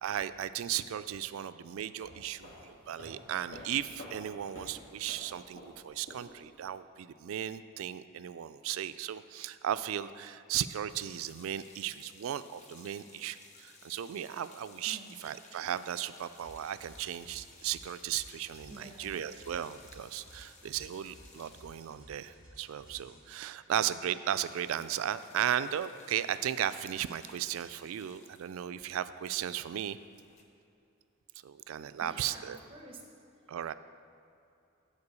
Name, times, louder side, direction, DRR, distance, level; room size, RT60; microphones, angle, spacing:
voice 1, 0.0-30.0 31.4-32.6 33.5-33.7, right 10 dB, 80° right, 14 dB, 0.3 m, -36 dB
voice 2, 1.4-1.8 2.4-2.6 14.9-15.2 18.7-19.3 22.8-23.2 31.6-31.7 32.0-33.1, right 2 dB, 25° right, 1 dB, 0.9 m, -51 dB
sound 1, 1.9-6.7, left 1 dB, 65° left, 1.7 m, -50 dB
sound 2, 10.9-23.3 23.5-23.7 24.0-30.4, left 4 dB, 35° left, 0.7 m, -58 dB
sound 3, 16.3-23.2, right 1 dB, 10° right, 2.1 m, -56 dB
9.7 x 4.4 x 6.8 m, 2.6 s
head